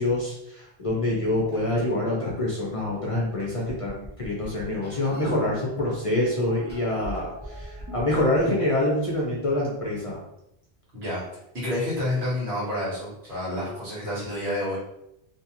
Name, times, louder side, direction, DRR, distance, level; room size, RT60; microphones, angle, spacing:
voice 1, 0.0-10.2, left 1 dB, 40° left, -4 dB, 0.5 m, -26 dB
sound 1, 1.5-1.6 2.9-3.0 3.4-5.4 6.2-8.8, equal, 10° right, 0.7 m, -41 dB
voice 2, 11.5-14.8, left 1 dB, 75° right, -6 dB, 1.4 m, -29 dB
2.7 x 2.4 x 2.8 m, 0.81 s
omnidirectional pair, 1.1 m